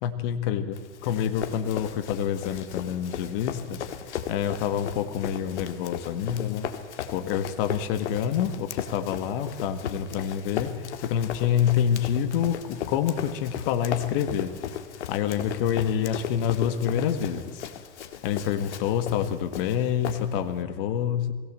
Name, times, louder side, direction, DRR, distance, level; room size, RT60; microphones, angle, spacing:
voice 1, 0.0-3.8 4.3-6.7 7.0-14.5 15.1-17.6 18.2-21.3, left 9 dB, 50° left, 10 dB, 1.8 m, -27 dB
Run, 0.7-20.6, left 9 dB, 85° left, 2.0 m, -37 dB
21.0 x 18.0 x 7.7 m, 1.3 s
supercardioid pair, 135°, 34 cm